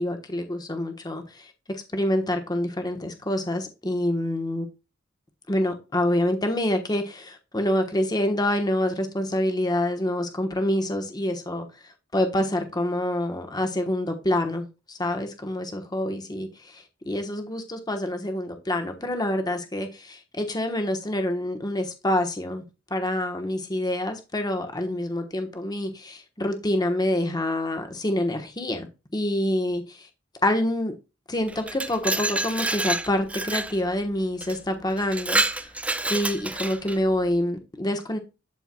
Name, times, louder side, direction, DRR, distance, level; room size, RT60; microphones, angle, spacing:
voice 1, 0.0-4.7 5.5-11.7 12.1-22.6 22.9-28.9 29.1-30.1 30.4-30.9 31.3-35.7 36.0-38.2, left 1 dB, 20° left, 1.1 m, -27 dB
Glass, 31.5-33.8 34.4-34.6 35.0-37.0, right 2 dB, 5° right, 0.4 m, -28 dB
11.5 x 4.5 x 2.3 m
head